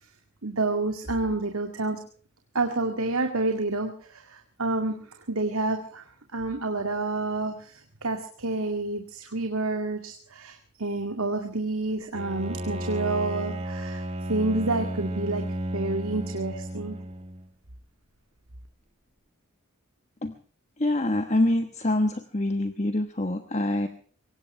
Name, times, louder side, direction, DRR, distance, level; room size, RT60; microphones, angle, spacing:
voice 1, 0.4-2.0 2.5-5.0 5.3-6.0 6.3-14.0 14.3-15.4 15.7-17.0, right 2 dB, 80° right, 4 dB, 2.2 m, -29 dB
Bowed string instrument, 12.1-17.5, right 1 dB, 30° right, 1.4 m, -33 dB
voice 2, 20.8-23.9, left 1 dB, 30° left, 8 dB, 1.2 m, -25 dB
23.5 x 18.5 x 3.3 m, 0.43 s
head